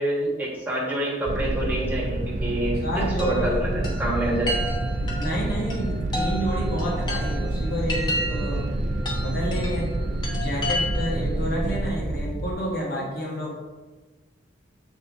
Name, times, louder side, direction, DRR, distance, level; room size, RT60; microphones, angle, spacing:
voice 1, 0.0-2.8 3.2-4.5, equal, 10° right, -5 dB, 1.4 m, -27 dB
sound 1, 1.3-12.5, right 2 dB, 40° right, 0.4 m, -28 dB
voice 2, 2.8-4.0 5.1-8.7 9.2-10.0 10.4-13.5, equal, 55° left, -4 dB, 1.7 m, -30 dB
Chime, 3.2-11.3, left 1 dB, 25° left, 0.8 m, -33 dB
7.0 x 4.0 x 3.5 m, 1.2 s
head